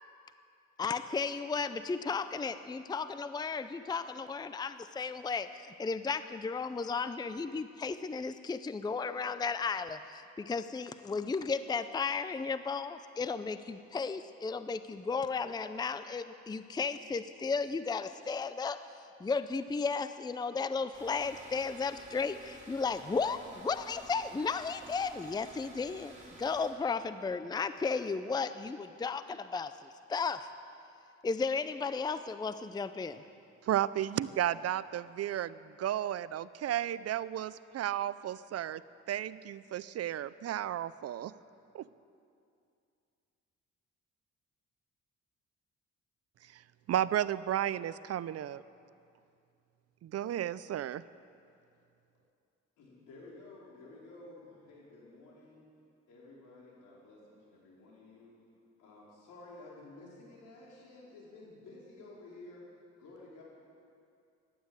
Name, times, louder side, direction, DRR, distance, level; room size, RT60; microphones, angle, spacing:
voice 1, 0.8-18.8 19.2-29.7 30.1-30.5 31.2-33.2, left 4 dB, 15° left, 12 dB, 0.5 m, -34 dB
sound 1, 20.9-26.7, right 2 dB, 25° right, 4.6 m, -53 dB
voice 2, 33.6-38.8 39.1-41.3 41.7-41.9 46.5-46.6 46.9-48.6 50.0-51.0, right 11 dB, 55° right, 17 dB, 0.5 m, -33 dB
voice 3, 52.8-55.7 56.1-58.4 58.8-62.7 62.9-63.4, left 2 dB, 85° left, -4 dB, 4.8 m, -52 dB
15.5 x 11.5 x 8.0 m, 2.5 s
cardioid pair, 90°, 30 cm